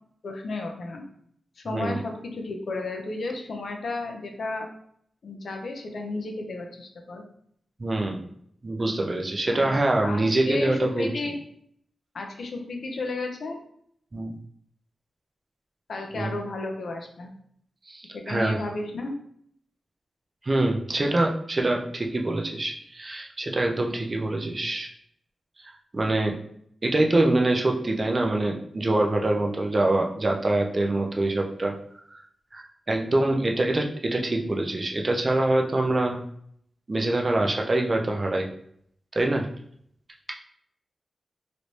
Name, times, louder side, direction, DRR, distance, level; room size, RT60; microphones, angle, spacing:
voice 1, 0.2-1.0 1.6-4.7 5.2-7.2 9.5-11.4 12.1-13.6 15.9-17.3 18.1-19.1, left 2 dB, 70° left, 3 dB, 0.6 m, -33 dB
voice 2, 7.8-8.2 8.6-11.1 14.1-14.3 16.1-16.3 17.9-18.6 20.4-24.9 25.9-26.4 26.8-31.8 32.1-32.2 32.5-36.2 36.9-38.5 39.1-39.5, right 2 dB, 30° right, 2 dB, 0.5 m, -25 dB
3.2 x 3.1 x 2.6 m, 0.67 s
wide cardioid pair, 125°, 0 cm